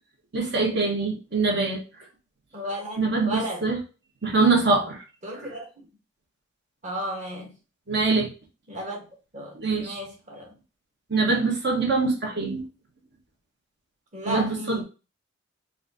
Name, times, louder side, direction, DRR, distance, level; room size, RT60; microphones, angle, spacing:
voice 1, 0.3-1.8 3.0-3.8 4.2-5.0 7.9-8.3 9.5-10.0 11.1-12.6 14.2-14.8, right 3 dB, 55° right, 1.3 m, -23 dB
voice 2, 2.5-3.7 5.2-5.9 6.8-7.5 8.7-9.1 9.3-10.5 14.1-14.8, equal, 35° right, 1.5 m, -34 dB
4.1 x 2.7 x 3.9 m
head